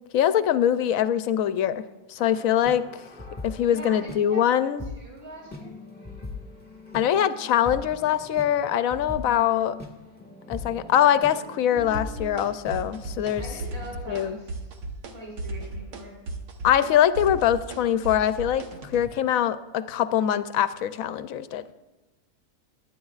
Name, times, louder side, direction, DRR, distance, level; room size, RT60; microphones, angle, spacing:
voice 1, 0.1-1.8 2.1-2.8 3.4-4.8 6.9-9.7 10.5-13.4 14.1-14.4 16.6-18.6 18.9-21.6, left 10 dB, 70° left, 13 dB, 0.9 m, -23 dB
sound 1, 2.2-4.2 4.8-4.9 5.3-14.0, left 3 dB, 5° left, 1.5 m, -41 dB
voice 2, 3.7-4.5 5.0-5.7 13.4-14.7 15.1-16.2, right 1 dB, 40° right, -4 dB, 3.6 m, -41 dB
sound 2, 11.9-12.5 12.7-13.3 13.6-14.2 14.5-15.1 15.4-19.0, right 2 dB, 85° right, 1.7 m, -35 dB
22.0 x 9.5 x 2.4 m, 1.1 s
omnidirectional pair, 1.6 m